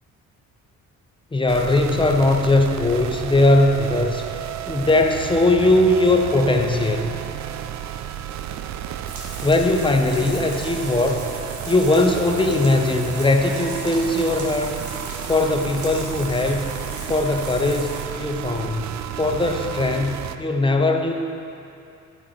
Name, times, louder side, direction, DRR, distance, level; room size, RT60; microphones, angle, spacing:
voice 1, 1.3-4.4 4.7-7.1 9.4-11.3 11.7-14.8 15.3-16.6 17.1-21.1, left 2 dB, 15° left, 4 dB, 0.8 m, -20 dB
sound 1, 1.5-20.4, right 10 dB, 65° right, 0.5 m, -32 dB
sound 2, 9.1-18.0, right 2 dB, 50° right, 1.9 m, -38 dB
12.0 x 6.0 x 4.2 m, 2.6 s
cardioid pair, 90°, 30 cm